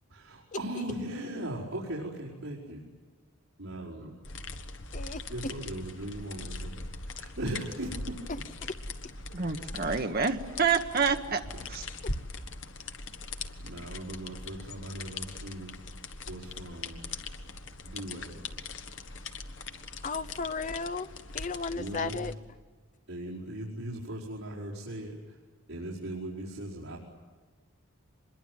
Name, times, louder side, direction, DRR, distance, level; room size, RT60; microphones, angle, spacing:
voice 1, 0.1-2.8 3.6-4.2 5.3-8.3 11.5-11.9 13.6-15.8 16.3-17.1 17.8-18.4 21.7-22.2 23.1-25.4 25.7-27.0, right 1 dB, 75° right, -7 dB, 5.0 m, -39 dB
sound 1, 4.2-22.3, left 3 dB, 60° left, 1.5 m, -41 dB
voice 2, 9.3-11.4 11.7-11.8, right 5 dB, 45° right, 5 dB, 1.6 m, -28 dB
voice 3, 20.0-21.1 21.3-22.3, left 4 dB, 35° left, 12 dB, 0.7 m, -34 dB
25.5 x 22.0 x 9.4 m, 1.4 s
head